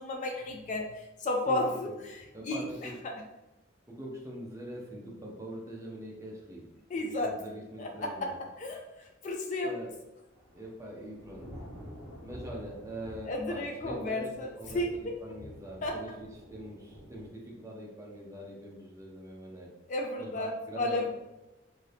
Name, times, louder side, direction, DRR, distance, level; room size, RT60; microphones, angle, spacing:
voice 1, 0.0-2.6 3.0-3.1 6.9-7.3 7.8-8.3 8.6-9.7 13.2-15.1 15.8-16.0 19.9-21.1, left 1 dB, 40° left, 2 dB, 0.3 m, -33 dB
voice 2, 1.5-2.0 2.3-3.0 3.9-6.7 6.9-8.3 9.6-9.9 10.5-11.5 12.2-19.8 20.2-21.1, equal, 15° right, -2 dB, 0.6 m, -43 dB
Thunder / Rain, 9.9-17.3, equal, 15° left, 1.2 m, -49 dB
2.7 x 2.6 x 3.3 m, 1.0 s
head